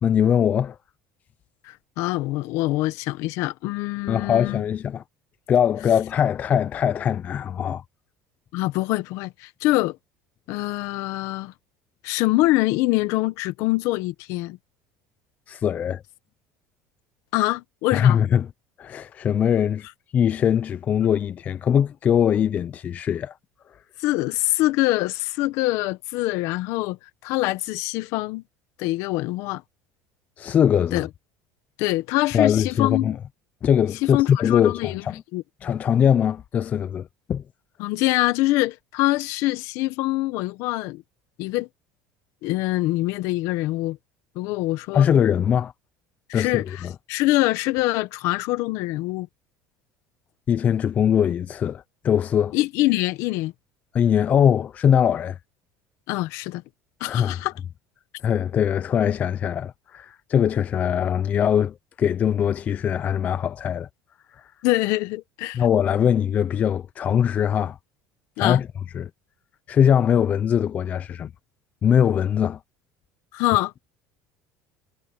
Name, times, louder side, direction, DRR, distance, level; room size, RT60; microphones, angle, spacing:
voice 1, 0.0-0.8 4.1-5.0 5.5-7.8 15.5-16.0 17.9-18.5 18.8-19.9 20.1-23.4 30.4-31.1 32.3-33.2 33.6-35.2 35.6-37.4 44.9-45.7 46.3-46.9 50.5-52.5 53.9-55.4 57.0-57.4 58.2-63.9 64.4-64.5 65.5-67.8 68.4-68.7 68.9-69.1 69.7-71.3 71.8-72.6, left 8 dB, 25° left, 0.4 m, -21 dB
voice 2, 1.6-4.6 8.5-10.0 10.5-11.5 12.0-14.6 17.3-18.2 21.0-21.1 24.0-27.0 27.2-28.4 28.8-29.6 30.9-31.1 31.8-33.2 34.0-35.0 35.3-35.4 37.8-41.0 41.4-41.7 42.4-44.0 44.3-45.1 46.3-46.8 47.1-49.3 52.5-53.5 56.1-56.6 57.0-57.5 64.6-65.6 68.4-68.6 73.3-73.7, left 19 dB, 60° left, 1.2 m, -24 dB
cardioid pair, 160°, 6 cm